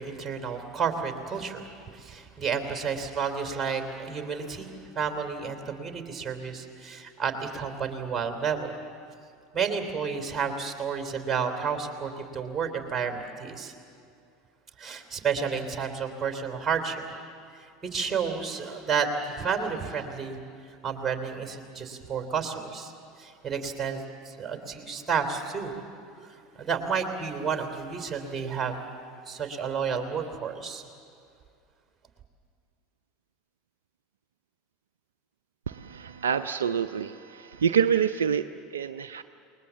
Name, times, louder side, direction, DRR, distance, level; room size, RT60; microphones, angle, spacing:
voice 1, 0.0-8.7 9.5-13.7 14.8-17.0 17.5-20.4 20.8-25.9 26.2-28.8 29.2-30.9, right 6 dB, 20° right, 5 dB, 3.3 m, -31 dB
voice 2, 35.7-39.2, right 7 dB, 70° right, 11 dB, 0.5 m, -27 dB
28.5 x 21.0 x 7.4 m, 2.4 s
figure-of-eight pair, 75°, 0 cm